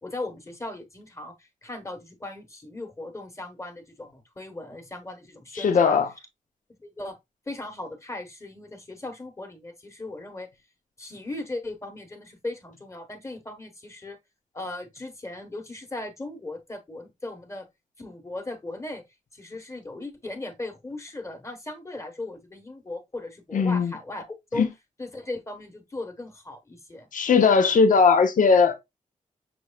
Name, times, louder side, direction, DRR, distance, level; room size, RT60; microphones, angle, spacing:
voice 1, 0.0-6.0 6.7-7.2 7.5-10.5 11.0-14.2 14.5-17.6 18.0-19.0 19.3-24.3 24.5-24.6 25.0-27.1, left 2 dB, 20° left, 1.2 m, -38 dB
voice 2, 5.5-6.1 23.5-23.9 24.6-24.7 27.1-28.8, left 5 dB, 70° left, 0.7 m, -19 dB
6.1 x 3.1 x 2.3 m
wide cardioid pair, 85°, 14 cm